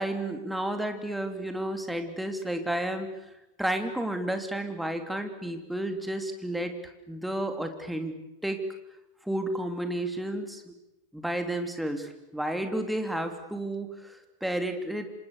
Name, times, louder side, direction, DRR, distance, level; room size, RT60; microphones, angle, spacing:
voice 1, 0.0-3.1 3.6-6.7 7.1-8.6 9.2-10.8 11.1-15.1, right 1 dB, ahead, 6 dB, 3.2 m, -32 dB
29.0 x 26.0 x 7.0 m, 0.92 s
figure-of-eight pair, 90°, 0 cm